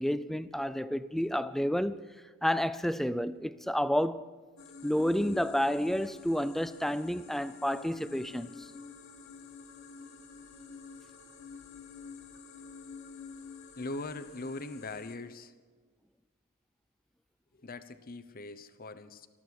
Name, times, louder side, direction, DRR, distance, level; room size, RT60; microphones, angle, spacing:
voice 1, 0.0-2.0 2.4-4.3 4.8-8.7, equal, ahead, 0.4 m, -30 dB
sound 1, 4.6-15.2, left 5 dB, 65° left, 2.0 m, -48 dB
voice 2, 13.8-15.5 17.5-19.3, left 2 dB, 45° left, 0.8 m, -41 dB
19.5 x 14.0 x 4.7 m
head